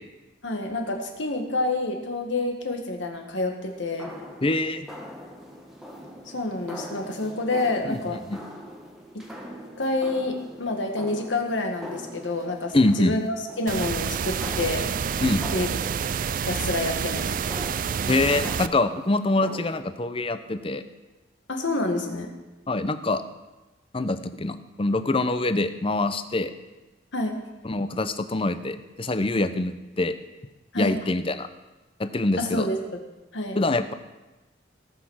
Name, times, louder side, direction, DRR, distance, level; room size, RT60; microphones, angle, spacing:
voice 1, 0.4-4.1 6.3-8.2 9.1-9.2 9.8-13.2 13.6-14.9 15.5-15.8 16.4-17.3 21.5-22.3 27.1-27.4 30.7-30.9 32.4-33.0 33.3-33.6, left 2 dB, 80° left, 3 dB, 1.8 m, -28 dB
sound 1, 3.7-19.8, equal, ahead, 1.5 m, -42 dB
voice 2, 4.4-4.9 7.8-8.0 8.3-8.4 12.7-13.2 15.2-15.4 18.1-20.8 22.7-23.2 23.9-26.5 27.6-30.1 30.8-31.5 32.0-32.7 33.6-33.9, left 2 dB, 30° left, 10 dB, 0.7 m, -24 dB
sound 2, 13.7-18.7, right 7 dB, 45° right, 0.4 m, -28 dB
18.0 x 6.0 x 6.4 m, 1.1 s
head